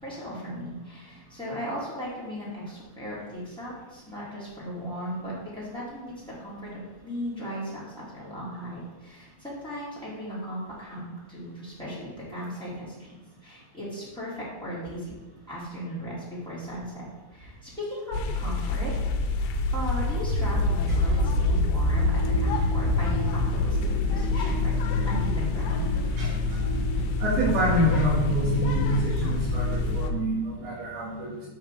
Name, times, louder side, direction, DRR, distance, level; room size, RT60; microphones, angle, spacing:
voice 1, 0.0-6.1 6.4-15.1 15.5-18.9 19.4-24.8 25.0-25.9, equal, 5° left, -9 dB, 0.6 m, -37 dB
sound 1, 18.1-30.1, left 2 dB, 80° left, 2.7 m, -26 dB
sound 2, 21.9-30.0, left 2 dB, 40° right, 0.6 m, -33 dB
voice 2, 26.2-26.6 27.2-31.5, right 1 dB, 60° right, -9 dB, 3.4 m, -27 dB
8.5 x 3.8 x 6.6 m, 1.1 s
omnidirectional pair, 5.4 m